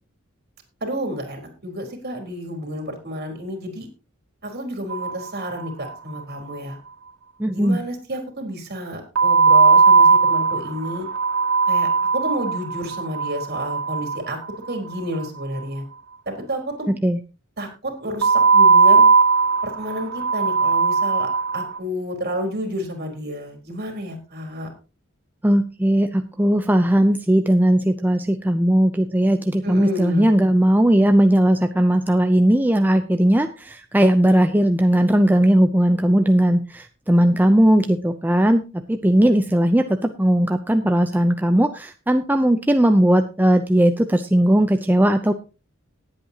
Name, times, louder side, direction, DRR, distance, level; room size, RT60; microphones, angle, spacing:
voice 1, 0.8-3.9 4.4-6.8 7.5-11.1 11.7-14.4 14.7-15.8 16.3-16.9 17.6-19.0 19.6-24.7 29.6-30.3, equal, 50° right, 3 dB, 3.9 m, -30 dB
sound 1, 4.9-5.9 6.2-6.3 6.5-6.6 9.1-15.3 18.2-21.8, right 4 dB, 70° right, 2.6 m, -18 dB
voice 2, 7.4-7.8 16.9-17.2 25.4-45.3, right 1 dB, 10° right, 7 dB, 0.6 m, -18 dB
19.0 x 8.4 x 2.9 m, 0.31 s
head